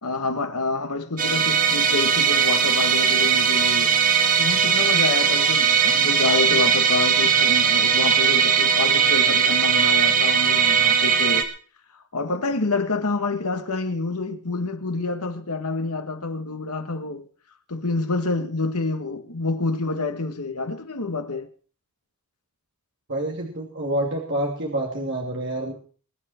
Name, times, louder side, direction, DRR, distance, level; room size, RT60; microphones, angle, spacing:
voice 1, 0.0-4.0 4.4-11.5 11.9-17.3 17.7-21.5, left 3 dB, 90° left, 1.8 m, -27 dB
Musical instrument, 1.2-11.4, right 7 dB, 40° right, 2.1 m, -19 dB
voice 2, 23.1-25.7, right 1 dB, 55° right, 2.9 m, -27 dB
22.5 x 10.5 x 4.5 m
head